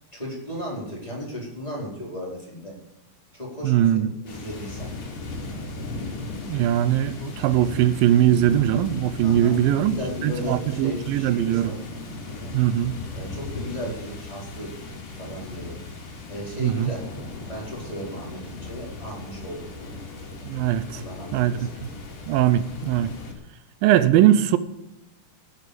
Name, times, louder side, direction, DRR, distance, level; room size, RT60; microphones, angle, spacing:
voice 1, 0.1-2.7 3.3-4.9 9.2-11.8 12.3-12.5 13.1-14.7 15.2-15.8 16.3-17.1 17.4-20.0 20.9-21.7, left 1 dB, 10° left, 4.6 m, -35 dB
voice 2, 3.6-4.1 6.5-10.0 10.2-11.7 12.5-13.0 16.6-16.9 20.4-21.0 21.3-21.9 22.3-23.1 23.8-24.6, right 11 dB, 85° right, 2.5 m, -21 dB
sound 1, 4.3-23.3, left 2 dB, 70° left, 4.7 m, -37 dB
17.0 x 9.6 x 5.2 m
omnidirectional pair, 4.0 m